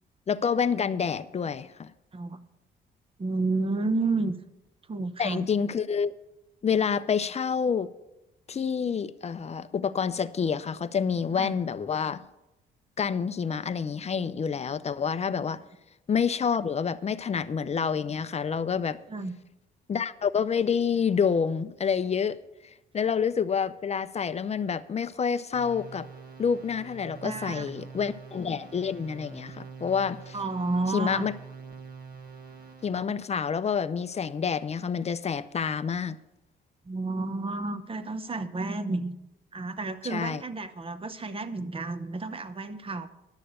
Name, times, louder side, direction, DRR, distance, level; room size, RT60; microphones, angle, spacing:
voice 1, 0.3-1.9 5.2-6.1 6.6-7.9 8.5-12.2 13.0-15.6 16.1-19.0 19.9-22.4 22.9-26.1 26.4-30.4 30.9-31.3 32.8-36.2 40.1-40.4, left 6 dB, 35° left, 14 dB, 0.5 m, -28 dB
voice 2, 3.2-4.3 4.9-5.5 11.4-11.5 19.1-19.3 27.2-27.7 30.3-31.3 36.9-39.2 39.5-43.1, right 3 dB, 25° right, 11 dB, 0.9 m, -31 dB
sound 1, 25.5-33.1, right 5 dB, 50° right, 1.7 m, -45 dB
11.5 x 6.7 x 6.6 m, 0.93 s
cardioid pair, 90°, 20 cm